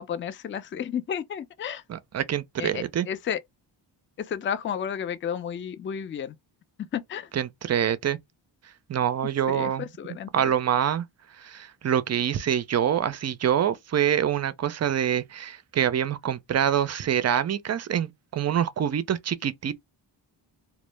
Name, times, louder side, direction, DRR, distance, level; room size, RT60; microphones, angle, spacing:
voice 1, 0.0-1.8 2.6-3.4 4.2-6.4 6.9-7.3 9.5-10.5, left 8 dB, 30° left, 0.3 m, -32 dB
voice 2, 1.9-3.1 7.3-8.2 8.9-9.9 10.3-11.0 11.4-19.8, right 9 dB, 40° right, 0.4 m, -25 dB
2.0 x 2.0 x 3.1 m
cardioid pair, 65°, 45 cm